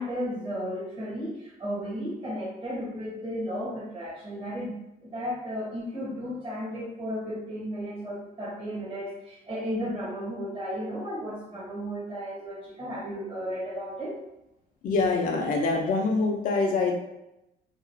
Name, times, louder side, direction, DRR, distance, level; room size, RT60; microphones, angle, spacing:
voice 1, 0.0-14.2, equal, 35° right, -7 dB, 1.1 m, -34 dB
voice 2, 14.8-16.9, left 3 dB, 50° left, 0 dB, 0.5 m, -25 dB
2.9 x 2.3 x 2.6 m, 0.89 s
cardioid pair, 110°, 17 cm